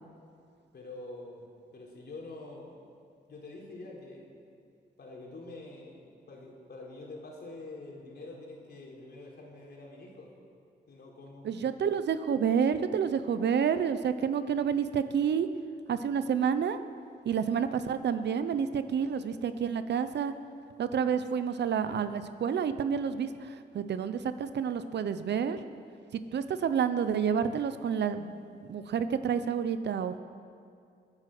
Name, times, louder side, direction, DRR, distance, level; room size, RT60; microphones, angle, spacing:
voice 1, 0.7-2.8 3.3-4.3 5.0-10.3 10.9-11.8, left 2 dB, 65° left, -1 dB, 3.8 m, -46 dB
voice 2, 11.4-15.5 15.9-16.8 17.2-20.3 20.8-25.6 26.1-30.2, right 7 dB, 75° right, 11 dB, 0.8 m, -29 dB
21.0 x 9.9 x 6.2 m, 2.3 s
cardioid pair, 70°, 18 cm